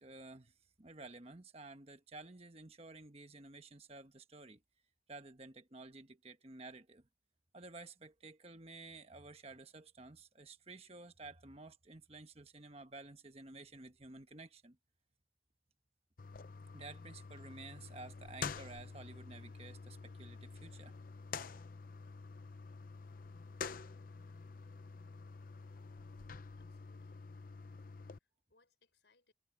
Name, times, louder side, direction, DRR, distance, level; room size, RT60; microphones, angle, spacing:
voice 1, 0.0-4.6 5.1-7.1 7.5-14.8 16.7-20.9, right 3 dB, 30° right, 1.3 m, -53 dB
sound 1, 16.2-28.2, left 5 dB, 45° left, 0.6 m, -48 dB
voice 2, 26.6-27.3 28.0-29.3, left 3 dB, 70° left, 5.5 m, -74 dB
head